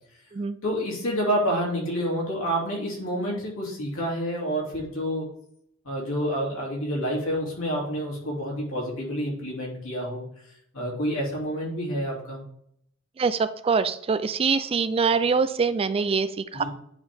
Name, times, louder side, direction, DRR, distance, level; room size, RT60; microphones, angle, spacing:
voice 1, 0.6-5.2 5.8-10.2 10.7-12.4 16.5-16.6, equal, 75° left, -3 dB, 2.9 m, -28 dB
voice 2, 13.2-16.6, right 5 dB, 30° right, 13 dB, 0.3 m, -24 dB
9.6 x 4.4 x 3.6 m, 0.70 s
head